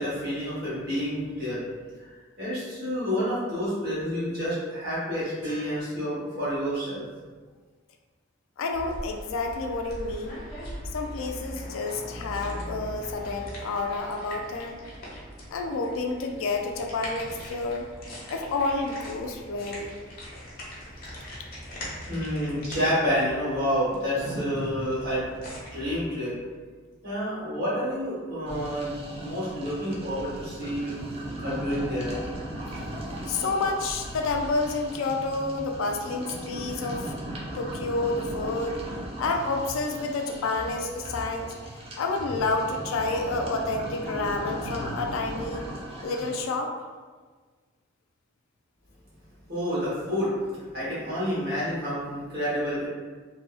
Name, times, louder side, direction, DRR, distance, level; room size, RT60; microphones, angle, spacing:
voice 1, 0.0-1.7 2.0-7.1 22.1-25.3 25.7-26.3 27.0-31.0 31.4-32.2 49.5-52.9, equal, 50° right, -10 dB, 1.4 m, -29 dB
voice 2, 8.6-10.4 10.9-14.8 15.5-17.9 18.3-19.9 33.3-37.1 37.5-38.8 39.2-41.5 42.0-45.6 46.0-46.7, left 3 dB, 90° left, 3 dB, 0.3 m, -29 dB
sound 1, 8.7-26.1, equal, 50° left, 0.7 m, -40 dB
sound 2, 28.5-46.4, right 1 dB, 30° right, 0.4 m, -37 dB
2.7 x 2.4 x 2.4 m, 1.4 s
head